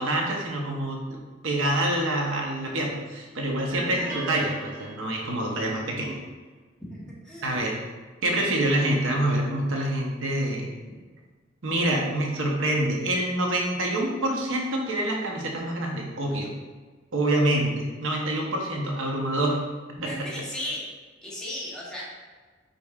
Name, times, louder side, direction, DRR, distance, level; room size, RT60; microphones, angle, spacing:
voice 1, 0.0-6.2 7.4-7.8 8.2-10.7 11.6-16.5 17.1-19.6 19.9-20.3, right 1 dB, 90° right, 0 dB, 0.8 m, -26 dB
sound 1, 3.7-5.5, right 2 dB, 45° right, 0.8 m, -38 dB
voice 2, 6.9-7.7 20.0-20.8 21.2-22.1, left 1 dB, 5° left, -7 dB, 1.1 m, -36 dB
5.1 x 4.2 x 2.4 m, 1.4 s
head